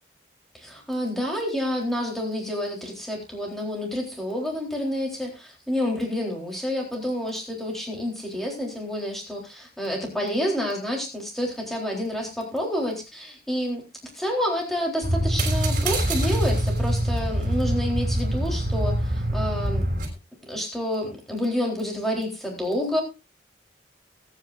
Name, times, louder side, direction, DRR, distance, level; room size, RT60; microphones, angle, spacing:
voice 1, 0.5-13.8 14.2-19.9 20.5-23.0, left 1 dB, ahead, -1 dB, 3.9 m, -29 dB
sound 1, 15.0-20.1, right 1 dB, 50° right, 5.6 m, -24 dB
22.0 x 9.9 x 2.6 m, 0.28 s
head